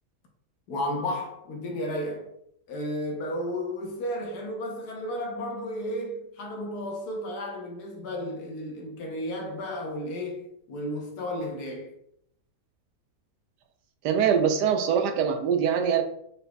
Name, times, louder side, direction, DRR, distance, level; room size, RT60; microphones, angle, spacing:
voice 1, 0.7-2.3 2.7-11.9, left 1 dB, 75° left, 1.2 m, -33 dB
voice 2, 14.0-16.0, right 7 dB, 90° right, 1.2 m, -23 dB
4.0 x 3.9 x 2.2 m
omnidirectional pair, 1.7 m